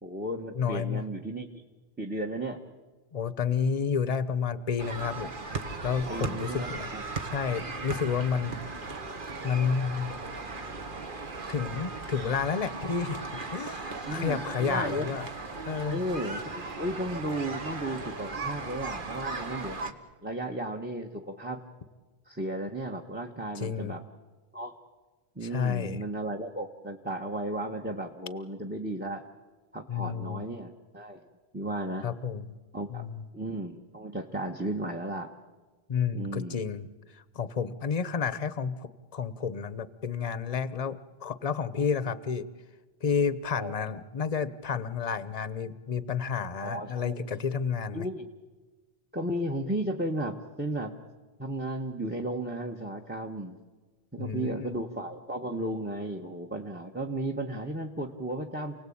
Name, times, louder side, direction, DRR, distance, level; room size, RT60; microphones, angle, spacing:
voice 1, 0.0-1.6 2.0-2.6 6.1-7.2 14.1-15.1 15.9-20.0 20.2-21.6 22.3-24.0 24.5-24.7 25.3-29.2 29.7-31.3 31.5-32.1 32.7-33.0 33.3-35.3 36.1-36.6 43.5-44.0 46.6-47.2 47.9-48.3 49.1-51.0 51.4-53.6 54.1-58.7, right 1 dB, 10° right, 6 dB, 1.2 m, -34 dB
voice 2, 0.5-1.0 3.1-5.3 5.8-6.9 7.2-8.6 9.4-10.1 11.5-15.3 15.6-16.0 23.5-24.0 25.4-26.0 29.9-30.5 32.0-32.5 32.9-33.3 35.9-36.9 37.3-42.4 43.0-48.1 54.2-54.7, left 6 dB, 40° left, 15 dB, 0.9 m, -30 dB
sound 1, 4.8-19.9, right 3 dB, 55° right, 1.6 m, -37 dB
28.5 x 18.5 x 8.6 m, 1.3 s
omnidirectional pair, 1.1 m